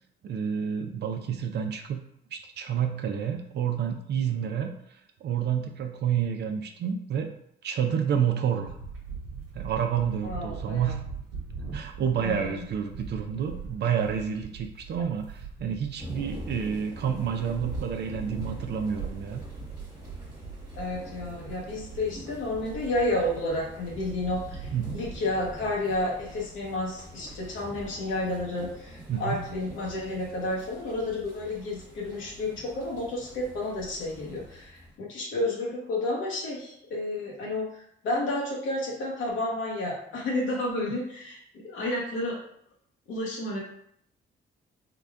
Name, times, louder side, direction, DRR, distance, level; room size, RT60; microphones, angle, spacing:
voice 1, 0.2-2.0 2.3-7.3 7.6-8.8 9.5-11.1 11.7-19.4 24.7-25.0 29.1-29.4, right 8 dB, 60° right, 4 dB, 0.5 m, -29 dB
sound 1, 8.6-25.2, right 5 dB, 90° right, 1.1 m, -41 dB
voice 2, 10.2-11.0 12.2-12.6 20.7-42.4 43.1-43.6, left 1 dB, 75° left, -4 dB, 1.0 m, -31 dB
sound 2, 16.0-34.9, equal, 20° right, 1.4 m, -45 dB
3.9 x 2.2 x 3.4 m, 0.71 s
cardioid pair, 90°, 20 cm